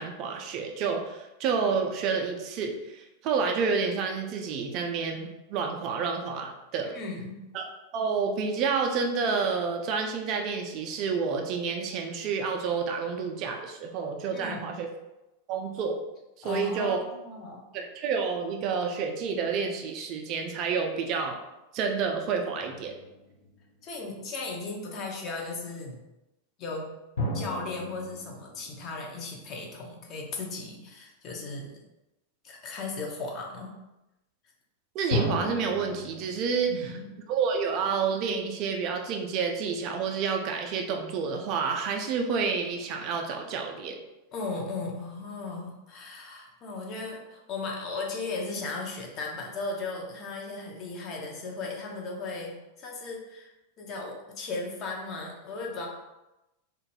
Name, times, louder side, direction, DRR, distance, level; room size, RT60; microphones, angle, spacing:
voice 1, 0.0-6.9 7.5-14.9 15.5-16.0 16.4-17.0 17.7-21.4 21.7-22.9 34.9-36.9 37.3-44.0, right 5 dB, 40° right, 3 dB, 0.3 m, -29 dB
voice 2, 6.9-7.4 14.3-14.6 16.4-17.6 23.8-26.0 26.6-26.9 27.3-31.8 32.4-33.7 36.7-37.1 44.3-53.5 53.8-55.9, left 3 dB, 35° left, 0 dB, 0.5 m, -36 dB
sound 1, 22.5-24.2 27.2-29.9 35.1-38.1, left 1 dB, 65° left, 0.8 m, -36 dB
2.2 x 2.0 x 3.2 m, 0.97 s
figure-of-eight pair, 90°, 0 cm